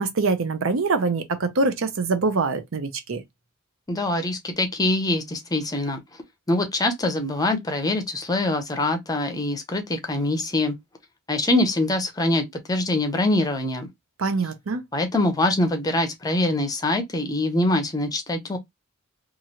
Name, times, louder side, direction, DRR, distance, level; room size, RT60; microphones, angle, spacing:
voice 1, 0.0-3.2 14.2-14.8, right 3 dB, 65° right, 0.6 m, -24 dB
voice 2, 3.9-6.0 6.5-10.8 11.3-13.9 14.9-18.6, left 2 dB, 20° left, 0.6 m, -24 dB
3.0 x 2.4 x 2.8 m
head